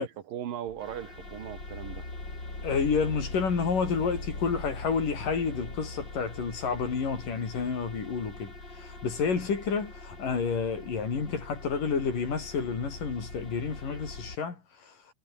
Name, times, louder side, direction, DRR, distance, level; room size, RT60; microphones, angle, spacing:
voice 1, 0.0-2.1, right 10 dB, 85° right, 3.6 m, -38 dB
sound 1, 0.7-14.4, left 2 dB, 30° left, 7.4 m, -42 dB
voice 2, 2.6-15.0, left 5 dB, 75° left, 6.3 m, -30 dB
omnidirectional pair, 3.9 m